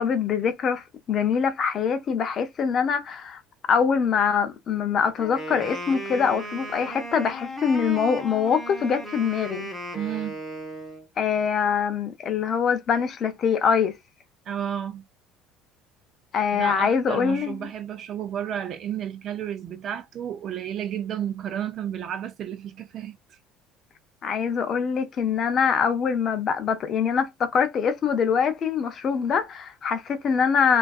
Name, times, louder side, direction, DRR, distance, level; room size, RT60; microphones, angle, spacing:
voice 1, 0.0-3.4 3.7-9.7 11.2-13.9 16.3-17.7 24.2-30.8, left 6 dB, 35° left, 0.4 m, -24 dB
Wind instrument woodwind instrument, 5.2-11.0, right 1 dB, 10° right, 0.7 m, -35 dB
voice 2, 9.9-10.4 14.5-15.1 16.5-23.4, right 9 dB, 45° right, 0.3 m, -32 dB
2.5 x 2.3 x 2.3 m
cardioid pair, 155°, 0 cm